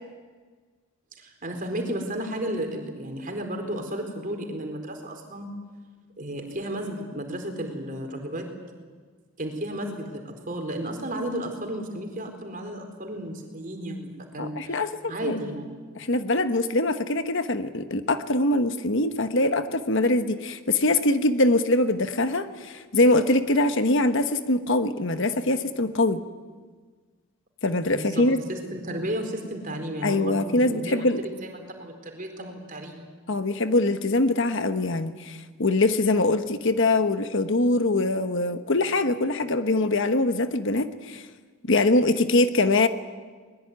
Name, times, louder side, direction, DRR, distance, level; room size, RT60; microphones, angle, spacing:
voice 1, 1.2-5.5 6.2-8.5 9.4-14.8 15.1-15.7 27.9-33.0, right 1 dB, 40° right, 4 dB, 4.3 m, -33 dB
voice 2, 14.4-15.4 15.9-26.2 27.6-28.4 30.0-31.2 33.3-41.3 41.7-42.9, left 2 dB, 55° left, 9 dB, 1.2 m, -23 dB
22.5 x 21.0 x 9.6 m, 1.5 s
head